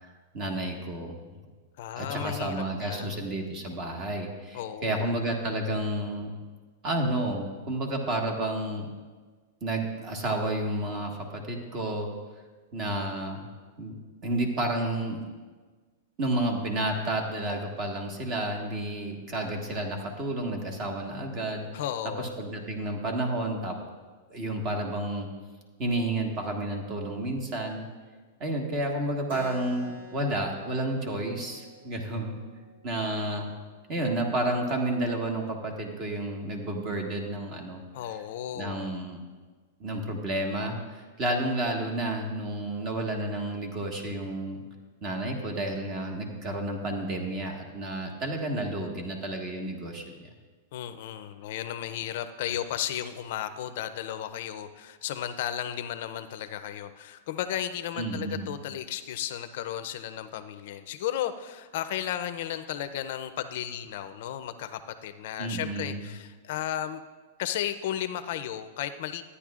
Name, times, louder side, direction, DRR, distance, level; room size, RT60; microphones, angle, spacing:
voice 1, 0.3-1.4 2.0-6.3 6.8-8.9 9.6-12.1 12.7-13.4 13.8-14.0 14.2-15.2 16.2-21.7 22.2-23.8 24.3-25.3 25.8-27.9 28.4-32.4 32.8-33.5 33.9-37.8 38.5-39.2 39.8-44.6 45.0-50.0 58.0-58.5 65.4-66.0, right 1 dB, 35° right, 2 dB, 1.5 m, -31 dB
voice 2, 1.8-3.2 4.5-5.1 21.7-22.3 37.9-39.0 50.7-67.0 67.4-69.2, left 11 dB, 60° left, 11 dB, 0.5 m, -34 dB
Keyboard (musical), 29.3-34.4, left 1 dB, 65° right, 1.0 m, -48 dB
13.5 x 9.7 x 2.4 m, 1.4 s
hypercardioid pair, 135°, 0 cm